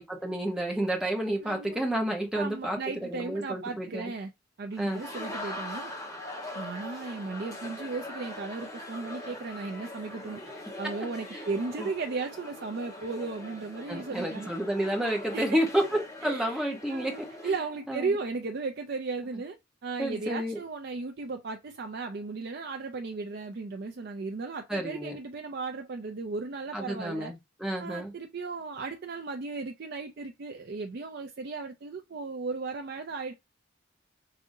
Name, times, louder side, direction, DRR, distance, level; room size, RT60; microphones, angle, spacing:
voice 1, 0.0-4.1 4.8-5.0 11.8-11.9 13.9-17.5 17.9-18.2 20.0-20.6 24.7-25.2 26.7-28.1, right 1 dB, 5° right, 0.9 m, -30 dB
voice 2, 1.4-1.8 2.3-4.3 4.6-5.9 6.5-10.4 10.8-14.5 15.3-15.6 16.2-19.6 19.8-27.3 27.8-33.3, right 4 dB, 55° right, 0.4 m, -36 dB
sound 1, 4.7-17.5, left 1 dB, 20° left, 1.2 m, -42 dB
4.9 x 2.7 x 2.6 m
head